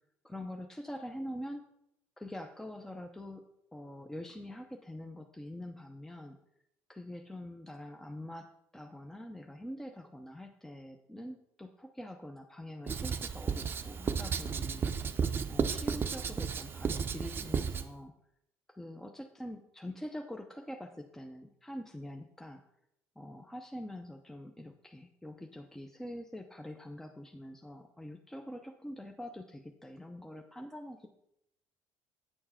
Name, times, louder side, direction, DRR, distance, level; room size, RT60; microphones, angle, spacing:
voice 1, 0.2-1.6 2.2-6.4 6.9-15.2 15.5-18.1 18.7-22.6 23.2-31.1, left 1 dB, 5° left, 4 dB, 0.7 m, -45 dB
Writing, 12.9-17.9, right 6 dB, 35° right, 0.6 m, -33 dB
8.8 x 4.5 x 5.7 m, 0.80 s
supercardioid pair, 90°, 6 cm